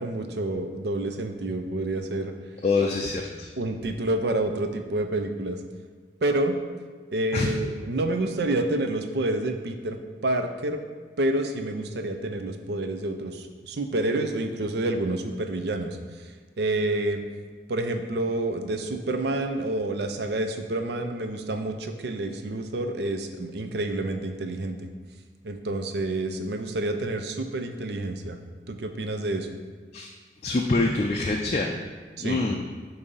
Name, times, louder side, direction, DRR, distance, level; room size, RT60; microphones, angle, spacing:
voice 1, 0.0-2.3 3.6-5.6 6.2-6.6 7.1-10.0 10.2-10.8 11.2-16.0 16.6-17.2 17.7-24.9 25.4-28.4 28.7-29.5 32.2-32.5, right 2 dB, 65° right, 6 dB, 0.5 m, -28 dB
voice 2, 2.6-3.5 7.3-7.5 29.9-30.1 30.4-31.7 32.2-32.6, left 3 dB, 35° left, 1 dB, 0.4 m, -25 dB
6.9 x 2.7 x 5.3 m, 1.5 s
head